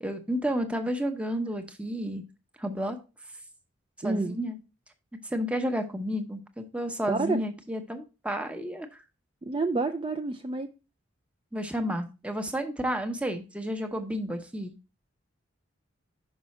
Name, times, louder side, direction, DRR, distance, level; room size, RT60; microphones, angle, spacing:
voice 1, 0.0-2.2 2.6-3.0 4.0-4.6 5.2-8.9 11.5-14.7, equal, 5° right, 5 dB, 0.7 m, -31 dB
voice 2, 4.0-4.4 7.1-7.4 9.4-10.7, right 3 dB, 25° right, 7 dB, 0.3 m, -28 dB
5.6 x 5.4 x 4.2 m, 0.31 s
head